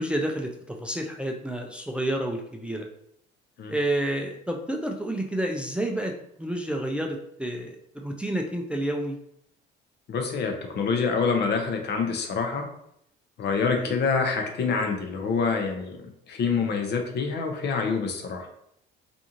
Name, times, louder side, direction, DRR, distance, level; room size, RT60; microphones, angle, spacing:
voice 1, 0.0-2.9 3.7-6.1 6.4-9.2 13.8-13.9, right 1 dB, 5° right, 2 dB, 0.4 m, -29 dB
voice 2, 10.1-12.6 13.4-16.0 16.3-18.5, left 5 dB, 55° left, 4 dB, 0.7 m, -26 dB
2.6 x 2.4 x 2.8 m, 0.74 s
supercardioid pair, 80°, 21 cm